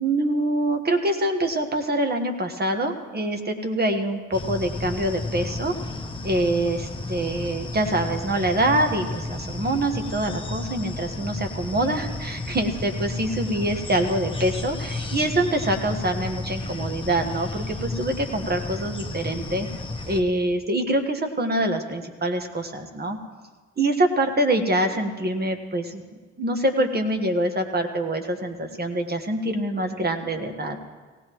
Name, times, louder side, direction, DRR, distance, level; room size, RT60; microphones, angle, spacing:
voice 1, 0.0-5.7 6.2-19.7 20.1-23.2 23.8-26.0 26.4-30.8, right 1 dB, 30° right, 6 dB, 1.4 m, -25 dB
sound 1, 4.3-20.2, left 2 dB, 15° left, 1.1 m, -32 dB
18.0 x 16.5 x 3.1 m, 1.4 s
cardioid pair, 90°, 30 cm